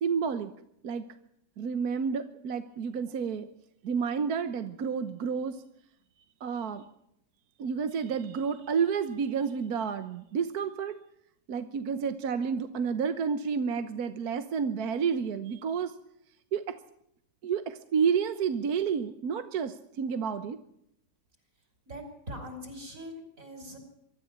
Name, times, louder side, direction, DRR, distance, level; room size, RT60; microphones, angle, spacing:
voice 1, 0.0-0.5 0.8-1.1 1.6-3.5 3.8-5.6 6.4-6.8 7.6-11.0 11.5-15.9 16.5-16.8 17.4-20.6, right 6 dB, 65° right, 10 dB, 1.5 m, -30 dB
voice 2, 21.9-23.8, equal, 50° right, 5 dB, 5.9 m, -42 dB
24.0 x 13.5 x 8.7 m, 0.75 s
omnidirectional pair, 1.8 m